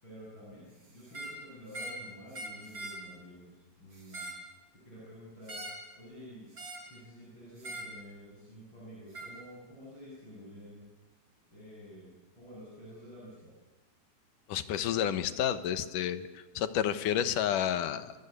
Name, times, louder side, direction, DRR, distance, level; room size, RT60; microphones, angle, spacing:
voice 1, 0.0-4.5 4.8-5.6 6.0-6.5 6.9-10.9 11.5-13.5, equal, 35° left, -6 dB, 8.1 m, -50 dB
sound 1, 1.0-1.4 1.7-2.0 2.3-3.0 3.9-4.4 5.5-5.9 6.5-6.9 7.6-7.9 9.1-9.3, right 1 dB, 35° right, 4.8 m, -41 dB
voice 2, 14.5-18.1, left 10 dB, 85° left, 11 dB, 2.7 m, -30 dB
26.5 x 23.5 x 8.3 m, 1.2 s
omnidirectional pair, 3.7 m